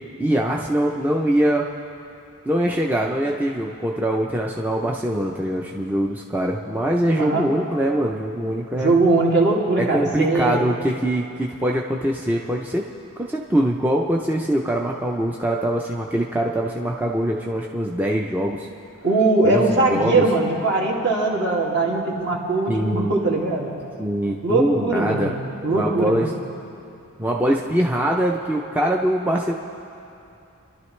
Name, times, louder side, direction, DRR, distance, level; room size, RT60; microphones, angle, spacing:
voice 1, 0.2-1.7 2.4-8.9 9.8-12.8 13.2-18.7 19.4-20.2 22.7-23.1 24.0-25.3 25.7-26.3 27.2-29.5, right 1 dB, 10° right, -1 dB, 0.5 m, -23 dB
voice 2, 7.2-7.5 8.8-10.7 19.0-23.7 24.4-25.3 25.6-26.3, right 3 dB, 50° right, -3 dB, 2.3 m, -20 dB
30.0 x 12.0 x 3.2 m, 2.7 s
head